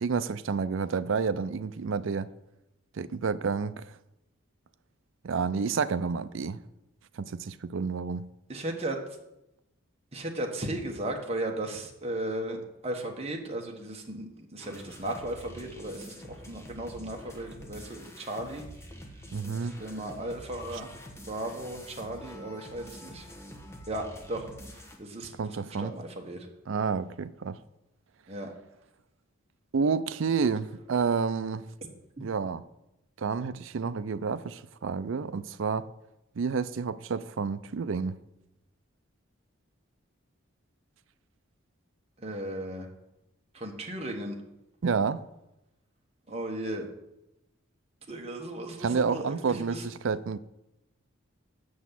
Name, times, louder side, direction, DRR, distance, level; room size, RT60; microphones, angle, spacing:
voice 1, 0.0-2.3 3.0-3.9 5.2-6.6 7.2-8.3 19.3-19.8 25.4-25.9 26.7-27.6 29.7-31.7 32.2-32.6 33.2-35.9 36.4-38.2 44.8-45.2 48.8-50.4, right 5 dB, 65° right, 0.4 m, -29 dB
voice 2, 8.5-9.0 10.1-16.1 16.5-18.7 19.6-20.9 21.3-23.3 23.9-24.5 25.0-26.4 28.3-28.5 42.2-42.9 43.5-44.4 46.3-46.9 48.1-49.8, right 1 dB, 30° right, 1.3 m, -36 dB
sound 1, 14.6-25.0, equal, 15° left, 1.1 m, -46 dB
7.0 x 6.2 x 7.6 m
head